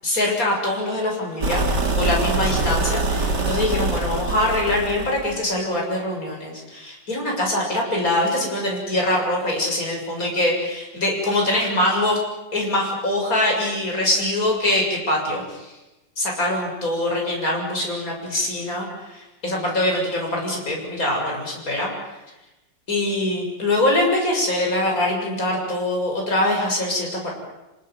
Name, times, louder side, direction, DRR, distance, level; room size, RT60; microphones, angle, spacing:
voice 1, 0.0-12.2 12.5-15.7 16.2-21.9 22.9-27.3, left 1 dB, 45° left, -1 dB, 7.5 m, -23 dB
sound 1, 1.4-5.4, right 2 dB, 60° right, 3.3 m, -24 dB
29.0 x 18.5 x 9.3 m, 1.0 s
omnidirectional pair, 2.0 m